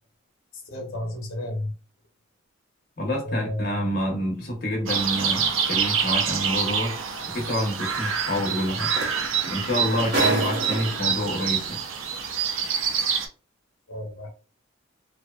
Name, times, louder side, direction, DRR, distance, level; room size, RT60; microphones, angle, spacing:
voice 1, 0.5-1.7 3.2-3.9 13.9-14.3, left 1 dB, 85° left, 1 dB, 0.8 m, -31 dB
voice 2, 3.0-6.9 7.3-8.9 9.5-11.8, equal, 45° left, -1 dB, 0.7 m, -27 dB
sound 1, 4.9-13.3, right 6 dB, 80° right, 0.5 m, -26 dB
sound 2, 6.8-6.9 8.6-8.7 9.0-11.2 12.1-12.2, right 2 dB, 50° right, 0.8 m, -28 dB
2.7 x 2.1 x 2.2 m, 0.36 s
head